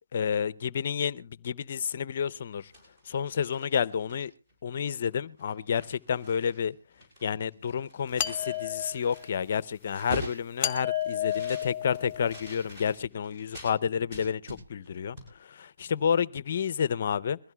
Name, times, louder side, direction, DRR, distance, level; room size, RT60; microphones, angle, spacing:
voice 1, 0.1-2.7 3.0-4.3 4.6-6.8 7.2-17.4, left 7 dB, 40° left, 0.6 m, -30 dB
sound 1, 2.5-4.5 4.9-5.1 5.4-6.6 6.9-13.7 14.1-14.9 15.2-15.3, equal, 20° right, 7.0 m, -44 dB
sound 2, 8.2-9.3 10.6-12.5, left 10 dB, 10° left, 1.8 m, -32 dB
22.5 x 15.5 x 2.3 m
hypercardioid pair, 165°, 0 cm